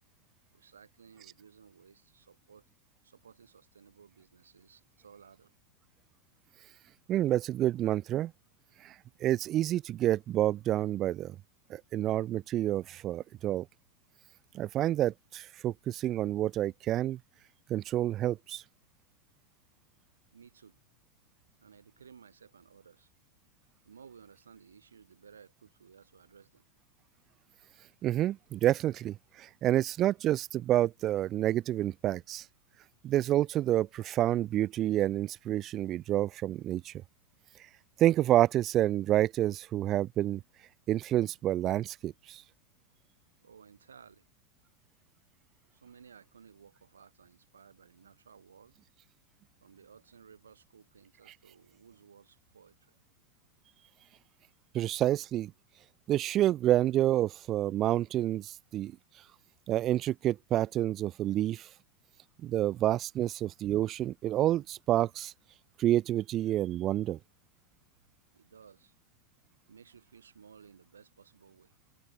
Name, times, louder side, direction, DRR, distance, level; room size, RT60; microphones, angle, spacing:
voice 1, 0.5-2.7 3.0-5.5 20.3-20.8 21.6-23.1 23.8-26.6 43.4-44.3 45.7-48.8 49.6-52.9 68.3-68.9 69.5-71.8, right 6 dB, 70° right, 7.8 m, -57 dB
voice 2, 7.1-8.3 8.8-8.9 9.2-11.4 11.7-13.7 14.5-17.2 17.7-18.6 28.0-32.4 33.0-36.9 38.0-40.4 40.9-42.4 54.7-55.5 56.1-58.9 59.7-61.7 62.4-65.3 65.8-67.2, right 13 dB, 30° right, 0.5 m, -28 dB
figure-of-eight pair, 90°, 0 cm